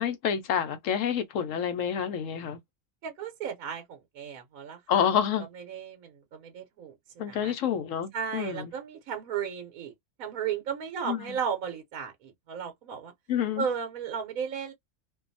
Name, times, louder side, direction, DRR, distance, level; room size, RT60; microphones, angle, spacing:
voice 1, 0.0-2.6 4.9-5.5 7.2-8.7 11.0-11.2 13.3-13.6, left 8 dB, 70° left, 0.9 m, -28 dB
voice 2, 3.0-5.1 5.5-7.5 8.1-9.9 10.2-13.1 13.6-14.7, right 7 dB, 75° right, 1.1 m, -35 dB
2.6 x 2.3 x 2.5 m
omnidirectional pair, 1.5 m